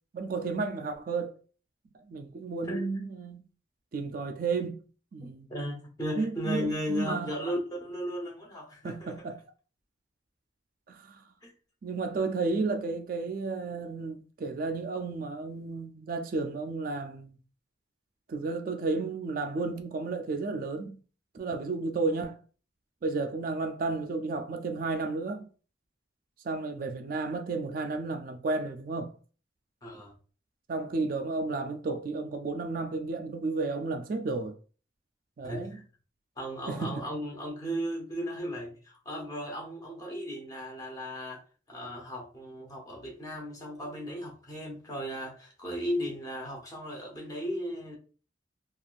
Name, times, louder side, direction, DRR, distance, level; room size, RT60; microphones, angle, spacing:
voice 1, 0.1-1.4 2.1-3.4 3.9-4.8 5.1-5.5 6.2-7.3 8.8-9.4 10.9-11.2 11.8-17.4 18.3-21.0 21.3-22.4 23.0-25.5 26.4-29.1 30.7-34.6 35.4-35.7 36.7-37.0, right 3 dB, 45° right, 0.3 m, -32 dB
voice 2, 5.2-9.2 11.4-11.5 29.8-30.1 35.4-35.8 36.4-41.4 41.7-48.0, equal, 20° left, 0.7 m, -36 dB
3.3 x 2.4 x 2.4 m
head